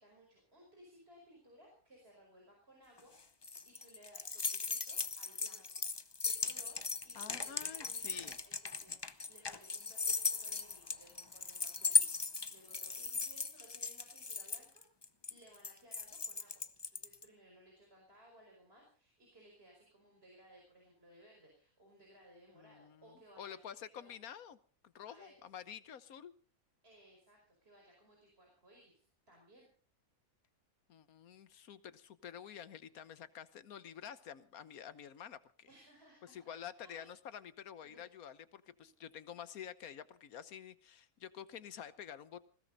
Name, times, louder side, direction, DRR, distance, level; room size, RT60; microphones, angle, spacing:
voice 1, 0.0-3.1 3.7-5.6 6.2-6.8 7.0-14.8 15.3-16.6 16.9-23.6 23.9-24.2 25.1-25.4 26.8-29.0 29.3-29.7 35.7-37.1 37.8-38.1 38.8-38.9 39.3-39.4, right 1 dB, 45° right, -1 dB, 5.4 m, -62 dB
sound 1, 3.0-17.2, left 4 dB, 25° left, 0.5 m, -37 dB
voice 2, 7.1-8.4 22.5-24.6 24.8-26.3 30.9-35.7 36.2-42.4, left 9 dB, 80° left, 15 dB, 1.4 m, -49 dB
20.5 x 16.5 x 4.0 m, 0.41 s
omnidirectional pair, 1.5 m